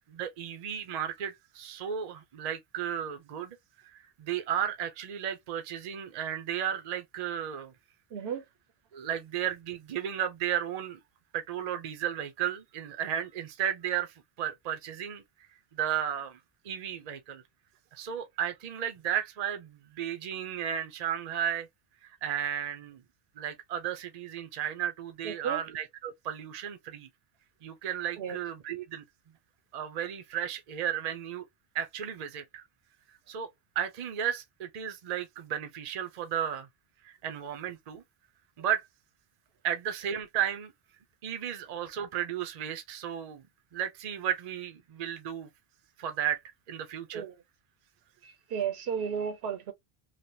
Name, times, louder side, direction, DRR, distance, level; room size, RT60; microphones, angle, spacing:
voice 1, 0.1-7.7 8.9-11.0 11.3-15.2 15.7-16.4 16.6-17.4 17.9-21.7 22.0-23.0 23.4-27.1 27.6-29.0 29.7-31.5 31.7-32.6 33.3-33.5 33.8-36.7 37.0-38.0 38.6-38.9 39.6-40.7 41.2-43.5 43.7-45.5 46.0-46.4 46.7-47.2, right 9 dB, 50° right, 0.6 m, -34 dB
voice 2, 8.1-8.5 25.2-25.6 28.2-28.4 47.1-47.4 48.2-49.7, right 7 dB, 80° right, 0.9 m, -33 dB
3.2 x 2.1 x 2.6 m
omnidirectional pair, 1.1 m